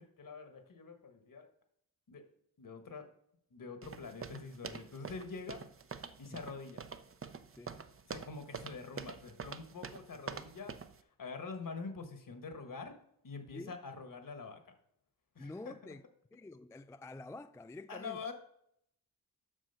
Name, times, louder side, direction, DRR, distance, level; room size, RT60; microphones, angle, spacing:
voice 1, 0.0-1.5 2.1-2.2 2.6-3.1 3.5-5.6 6.2-6.9 8.1-10.8 11.2-12.9 13.2-14.6 15.3-15.9 17.9-18.3, left 4 dB, 55° left, 1.4 m, -45 dB
sound 1, 3.8-11.0, right 6 dB, 35° right, 0.6 m, -46 dB
voice 2, 15.4-16.0 16.3-18.2, left 2 dB, 10° left, 0.3 m, -48 dB
7.6 x 6.1 x 5.6 m
cardioid pair, 70°, 38 cm